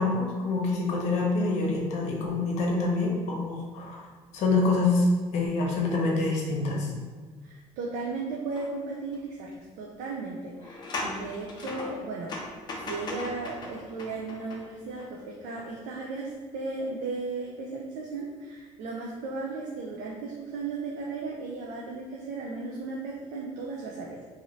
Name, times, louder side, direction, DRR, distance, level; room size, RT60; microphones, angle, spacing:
voice 1, 0.0-4.0 4.3-5.1 5.3-6.9, left 3 dB, 60° left, -1 dB, 0.8 m, -26 dB
voice 2, 7.4-12.3 12.7-24.2, right 3 dB, 75° right, -2 dB, 0.4 m, -36 dB
sound 1, 8.6-8.7 9.1-9.2 10.5-15.1 15.5-15.6, left 2 dB, 35° left, 0.5 m, -38 dB
2.7 x 2.5 x 3.1 m, 1.5 s
cardioid pair, 135°, 13 cm